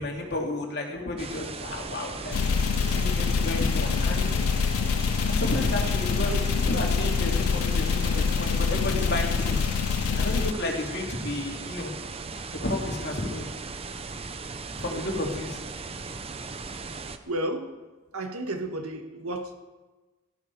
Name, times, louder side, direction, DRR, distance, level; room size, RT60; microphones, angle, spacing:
voice 1, 0.0-2.4 2.8-4.4 5.3-9.6 10.1-12.0 12.6-13.5 14.8-15.6, left 1 dB, 50° left, 0 dB, 2.7 m, -32 dB
sound 1, 1.2-17.2, right 4 dB, 25° right, 0.7 m, -38 dB
sound 2, 2.3-10.5, left 5 dB, 90° left, 0.4 m, -25 dB
voice 2, 17.3-17.7 18.1-19.5, right 1 dB, 85° right, 5 dB, 1.7 m, -32 dB
17.0 x 14.0 x 4.8 m, 1.2 s
head